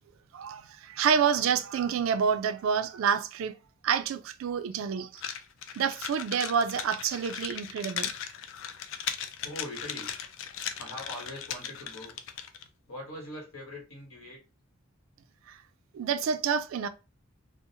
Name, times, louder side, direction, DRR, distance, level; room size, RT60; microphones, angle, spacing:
voice 1, 0.3-3.5 3.8-5.2 5.8-8.1 15.5-15.6 15.9-16.9, right 7 dB, 75° right, 0.3 m, -28 dB
sound 1, 5.2-12.7, left 8 dB, 65° left, 0.3 m, -37 dB
voice 2, 9.4-10.1 10.8-12.1 12.9-14.4, left 1 dB, 85° left, 1.1 m, -42 dB
2.6 x 2.0 x 2.7 m
head